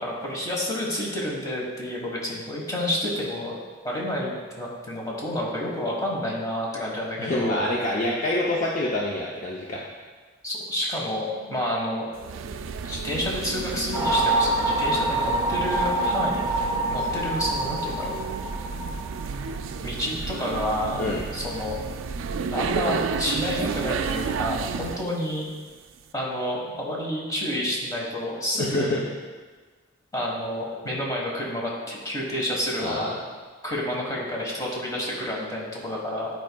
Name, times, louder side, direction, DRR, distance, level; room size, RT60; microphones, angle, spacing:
voice 1, 0.0-3.6 3.8-7.6 10.4-12.1 12.9-16.5 16.9-18.1 19.8-21.0 21.3-21.8 22.5-25.4 26.1-29.0 30.1-33.2 33.6-36.3, left 1 dB, 20° left, -4 dB, 1.3 m, -29 dB
voice 2, 7.2-9.8 21.0-21.2 28.6-29.0 32.8-33.1, left 1 dB, 40° left, -4 dB, 0.6 m, -26 dB
sound 1, 12.2-25.1, right 5 dB, 90° right, 0.3 m, -32 dB
sound 2, 13.9-19.4, right 2 dB, 20° right, 0.7 m, -26 dB
10.0 x 4.6 x 2.3 m, 1.4 s
head